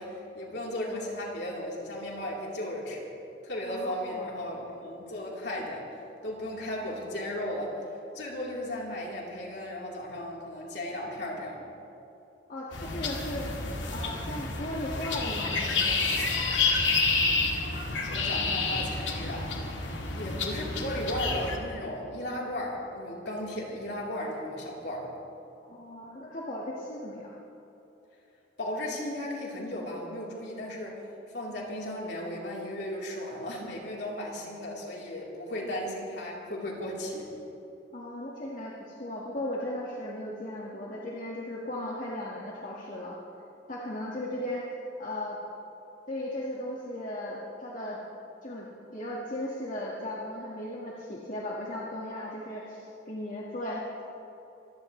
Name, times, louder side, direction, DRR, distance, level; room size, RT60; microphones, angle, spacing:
voice 1, 0.0-3.0 3.4-5.9 6.2-7.8 8.1-11.6 18.1-19.5 20.2-25.1 28.6-31.0 31.3-37.3, left 1 dB, 65° left, -4 dB, 3.9 m, -35 dB
voice 2, 3.7-4.4 12.5-13.5 13.9-16.2 25.7-27.4 37.9-43.2 43.7-45.4 46.1-48.0 48.4-48.7 48.9-54.0, left 1 dB, 45° left, -5 dB, 1.9 m, -36 dB
sound 1, 12.7-21.6, left 3 dB, 80° left, 2.2 m, -29 dB
24.5 x 17.0 x 3.3 m, 2.9 s
head